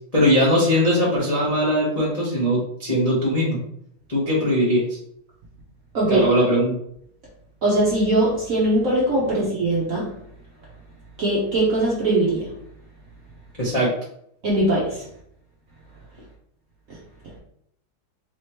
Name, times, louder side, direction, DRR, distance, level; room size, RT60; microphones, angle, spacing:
voice 1, 0.1-3.6 4.1-5.0 6.1-6.7 13.6-13.9, equal, 35° left, -7 dB, 0.6 m, -20 dB
voice 2, 5.9-6.3 7.6-10.1 11.2-12.5 14.4-15.0, right 1 dB, 55° right, -5 dB, 0.9 m, -21 dB
4.2 x 2.9 x 3.1 m, 0.70 s
omnidirectional pair, 2.3 m